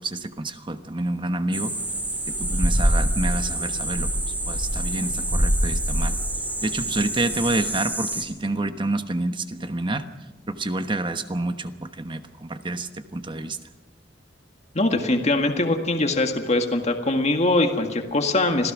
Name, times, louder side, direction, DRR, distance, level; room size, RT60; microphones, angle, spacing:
voice 1, 0.0-1.7 2.3-4.1 4.5-6.2 6.6-10.0 10.5-13.6, right 2 dB, 25° right, 9 dB, 1.1 m, -28 dB
sound 1, 1.5-8.2, right 1 dB, 10° right, 2.8 m, -25 dB
voice 2, 14.7-18.7, left 2 dB, 40° left, 4 dB, 1.8 m, -22 dB
26.0 x 16.5 x 6.2 m, 1.1 s
head